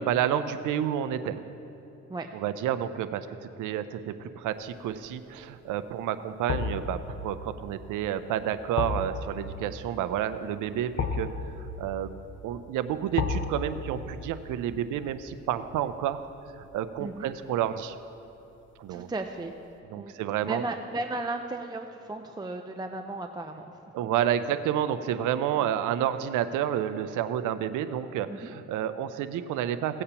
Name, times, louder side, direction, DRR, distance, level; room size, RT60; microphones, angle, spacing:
voice 1, 0.0-1.4 2.3-11.3 11.5-12.2 12.4-16.3 16.6-18.0 18.8-19.1 19.9-20.6 23.9-30.0, right 10 dB, 85° right, 11 dB, 0.6 m, -30 dB
sound 1, 4.7-5.1 6.5-17.5 17.8-18.0, left 4 dB, 40° left, 0.9 m, -36 dB
voice 2, 18.9-19.5 20.0-23.7 28.3-28.5, right 2 dB, 15° right, 5 dB, 0.5 m, -35 dB
16.5 x 8.2 x 2.9 m, 3.0 s
cardioid pair, 90°, 30 cm